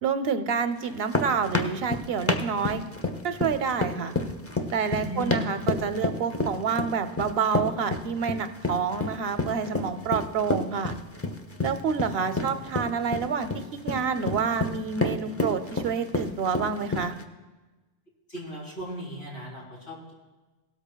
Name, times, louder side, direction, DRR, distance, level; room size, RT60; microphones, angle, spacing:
voice 1, 0.0-2.8 3.2-4.1 4.7-10.9 11.6-17.1, right 6 dB, 65° right, 10 dB, 0.8 m, -28 dB
sound 1, 0.8-17.2, left 2 dB, 15° left, 0.5 m, -29 dB
voice 2, 5.0-5.5 12.0-12.6 18.3-20.1, left 1 dB, 80° left, -4 dB, 3.9 m, -37 dB
17.0 x 13.0 x 2.2 m, 1.2 s
omnidirectional pair, 1.1 m